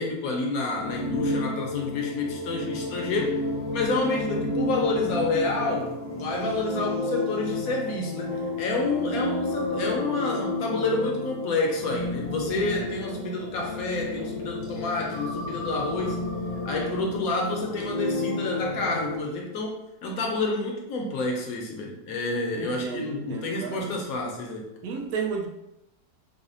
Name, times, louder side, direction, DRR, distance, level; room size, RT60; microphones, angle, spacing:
voice 1, 0.0-3.4 3.7-16.3 16.6-24.7, left 2 dB, 70° left, 0 dB, 0.9 m, -29 dB
sound 1, 0.8-19.2, left 2 dB, 40° left, 0.6 m, -31 dB
voice 2, 22.5-24.0 24.8-25.5, right 6 dB, 70° right, 1 dB, 0.9 m, -33 dB
4.9 x 2.0 x 2.5 m, 0.91 s
omnidirectional pair, 1.9 m